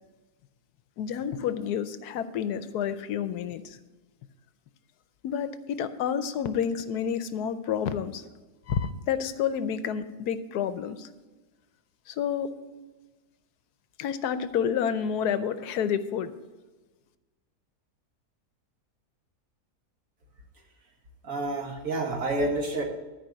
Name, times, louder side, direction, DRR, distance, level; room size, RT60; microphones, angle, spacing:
voice 1, 1.0-3.8 5.2-8.2 8.7-11.1 12.1-12.5 14.0-16.3, left 8 dB, 75° left, 12 dB, 1.2 m, -29 dB
voice 2, 21.2-22.8, right 2 dB, 55° right, 1 dB, 1.9 m, -29 dB
13.0 x 5.0 x 7.6 m, 1.2 s
omnidirectional pair, 1.7 m